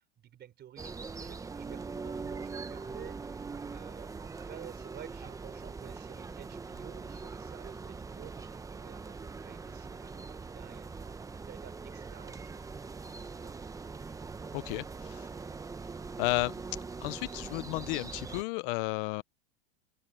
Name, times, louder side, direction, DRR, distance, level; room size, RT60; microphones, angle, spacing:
voice 1, 0.0-12.9 13.4-14.0, right 11 dB, 30° right, 4.5 m, -52 dB
sound 1, 0.8-18.4, right 4 dB, 10° right, 0.9 m, -42 dB
voice 2, 14.5-15.3 16.2-16.6 17.0-19.2, left 24 dB, 55° left, 0.6 m, -33 dB
supercardioid pair, 135°, 32 cm